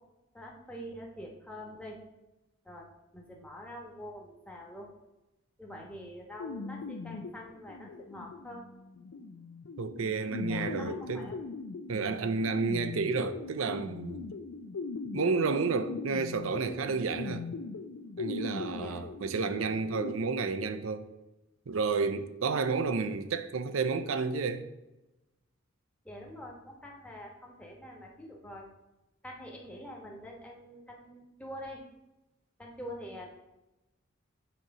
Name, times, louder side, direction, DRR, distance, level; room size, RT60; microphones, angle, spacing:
voice 1, 0.3-2.0 2.6-2.9 3.1-4.9 5.6-8.6 10.2-11.4 18.8-19.0 26.0-28.7 29.2-31.8 32.6-33.3, equal, 5° left, 1.0 m, -45 dB
sound 1, 6.4-20.1, left 4 dB, 85° left, 0.5 m, -40 dB
voice 2, 9.8-11.3 11.9-14.3 15.1-17.5 18.2-21.1 21.7-24.7, right 4 dB, 80° right, 0.5 m, -31 dB
9.1 x 3.1 x 4.8 m
head